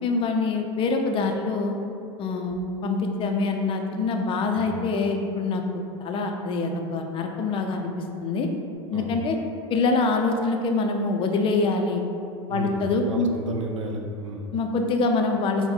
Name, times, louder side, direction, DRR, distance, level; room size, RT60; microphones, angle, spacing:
voice 1, 0.0-1.7 2.2-2.6 2.8-7.9 8.2-8.5 8.9-9.4 9.7-12.0 12.5-13.3 14.5-15.7, left 3 dB, 35° left, 4 dB, 0.4 m, -25 dB
Bass guitar, 2.5-8.8, equal, 30° right, 0.7 m, -38 dB
voice 2, 12.5-14.5, right 2 dB, 85° right, 2 dB, 0.5 m, -33 dB
4.1 x 2.1 x 3.9 m, 2.5 s
hypercardioid pair, 85°, 16 cm